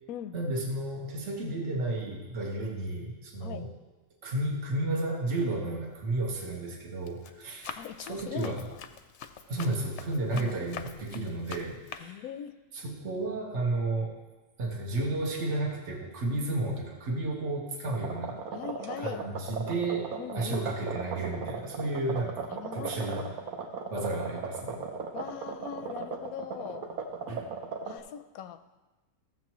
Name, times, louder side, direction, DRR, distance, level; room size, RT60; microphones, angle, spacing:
voice 1, 0.3-3.7 4.2-7.8 8.1-8.7 9.5-12.2 12.7-14.1 14.6-18.4 19.0-23.3 23.9-24.8 27.3-27.5, right 2 dB, 55° right, -1 dB, 1.7 m, -32 dB
Run, 5.9-6.2 6.7-12.0, left 7 dB, 65° left, 0.8 m, -45 dB
voice 2, 7.8-8.8 10.3-10.5 12.0-12.6 18.5-19.2 20.2-20.7 22.5-23.3 25.1-26.9 27.8-28.6, left 9 dB, 90° left, 10 dB, 1.1 m, -40 dB
sound 1, 17.8-28.0, right 5 dB, 80° right, 1.4 m, -37 dB
15.5 x 7.4 x 3.1 m, 1.2 s
omnidirectional pair, 1.5 m